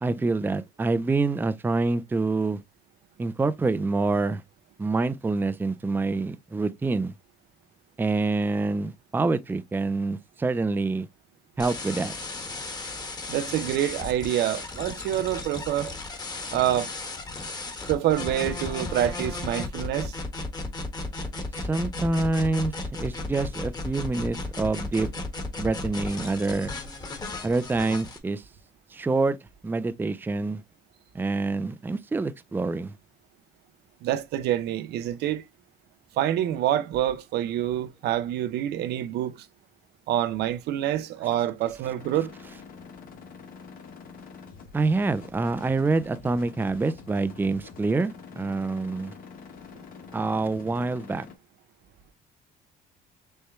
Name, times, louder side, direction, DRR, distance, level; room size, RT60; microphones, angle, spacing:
voice 1, 0.0-2.6 3.2-4.4 4.8-7.1 8.0-11.1 11.6-12.1 21.6-25.1 25.6-26.7 27.4-28.4 28.9-29.4 29.6-30.6 31.1-32.9 44.7-49.1 50.1-51.3, right 3 dB, 10° right, 0.4 m, -26 dB
sound 1, 11.6-28.2, left 2 dB, 25° left, 1.3 m, -35 dB
voice 2, 13.3-15.9 16.5-16.9 17.9-20.2 34.0-35.4 36.2-39.5 40.1-42.3, right 12 dB, 75° right, 0.6 m, -26 dB
sound 2, 42.0-51.4, left 5 dB, 55° left, 1.3 m, -46 dB
6.5 x 2.2 x 3.0 m
cardioid pair, 110°, 17 cm